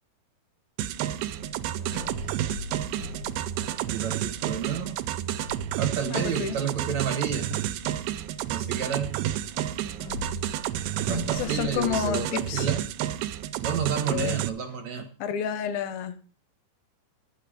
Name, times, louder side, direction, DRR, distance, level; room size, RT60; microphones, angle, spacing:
sound 1, 0.8-14.5, right 12 dB, 85° right, 2.6 m, -31 dB
Sliding door, 1.4-6.2 7.8-12.8, equal, 55° left, 4.8 m, -41 dB
voice 1, 3.9-5.0 5.8-7.5 8.5-9.2 11.0-12.8 13.6-15.1, right 7 dB, 60° right, 1.9 m, -30 dB
voice 2, 6.1-6.6 11.3-12.7 14.1-14.4 15.2-16.1, left 9 dB, 75° left, 2.8 m, -30 dB
12.5 x 8.6 x 5.0 m
omnidirectional pair, 4.4 m